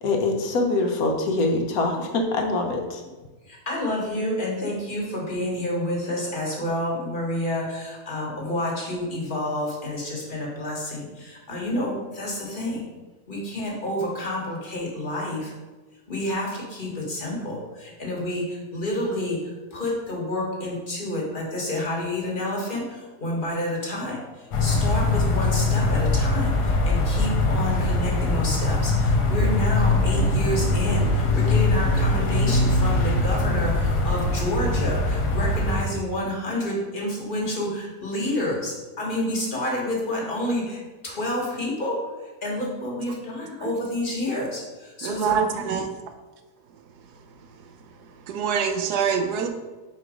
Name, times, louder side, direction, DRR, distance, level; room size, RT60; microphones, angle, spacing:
voice 1, 0.0-3.0, left 2 dB, 70° left, 3 dB, 1.2 m, -24 dB
voice 2, 3.5-12.9 13.3-15.5 16.1-24.2 24.6-42.0 42.4-45.7, left 1 dB, 35° left, -3 dB, 1.3 m, -29 dB
sound 1, 24.5-35.8, left 2 dB, 85° left, 1.4 m, -22 dB
voice 3, 45.0-45.9 48.3-49.5, right 7 dB, 80° right, 5 dB, 1.2 m, -24 dB
4.5 x 4.2 x 5.0 m, 1.3 s
omnidirectional pair, 1.7 m